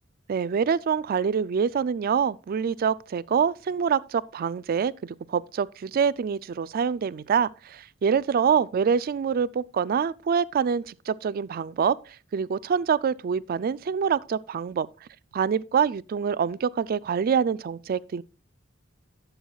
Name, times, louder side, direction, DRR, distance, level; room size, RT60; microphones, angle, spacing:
voice 1, 0.3-14.9 15.3-18.2, right 6 dB, 50° right, 0.3 m, -25 dB
12.0 x 7.9 x 2.3 m
head